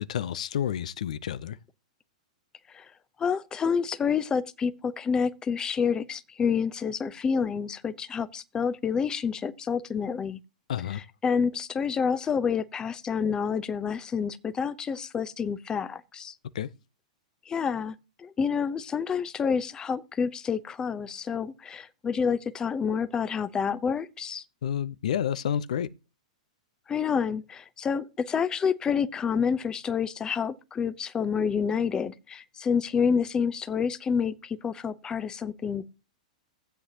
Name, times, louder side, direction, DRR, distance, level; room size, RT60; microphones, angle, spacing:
voice 1, 0.0-1.6 10.7-11.0 16.5-16.7 24.6-25.9, left 9 dB, 75° left, 0.6 m, -30 dB
voice 2, 3.2-10.4 10.9-16.3 17.5-24.4 26.9-35.8, left 6 dB, 20° left, 0.7 m, -28 dB
15.0 x 8.0 x 2.8 m
hypercardioid pair, 120°, 4 cm